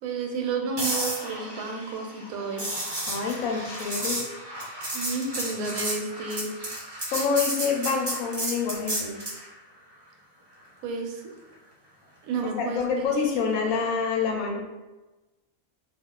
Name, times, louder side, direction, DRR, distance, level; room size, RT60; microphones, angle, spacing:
voice 1, 0.0-2.7 4.9-6.5 10.8-11.3 12.2-13.1, right 4 dB, 85° right, 2 dB, 1.1 m, -31 dB
sound 1, 0.8-9.4 13.6-13.8, right 1 dB, 35° right, 0.4 m, -32 dB
voice 2, 3.1-4.2 7.1-9.2 12.6-14.7, left 5 dB, 80° left, 0 dB, 1.0 m, -27 dB
2.4 x 2.3 x 3.6 m, 1.1 s
omnidirectional pair, 1.5 m